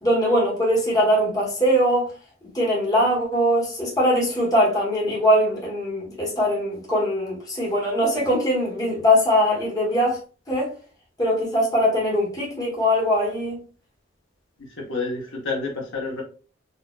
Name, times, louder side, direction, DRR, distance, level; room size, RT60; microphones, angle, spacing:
voice 1, 0.0-2.1 2.5-10.2 10.5-10.7 11.2-13.6, equal, 20° left, 1.3 m, -21 dB
voice 2, 14.6-16.2, left 3 dB, 65° left, 1.1 m, -29 dB
4.2 x 2.6 x 2.4 m
head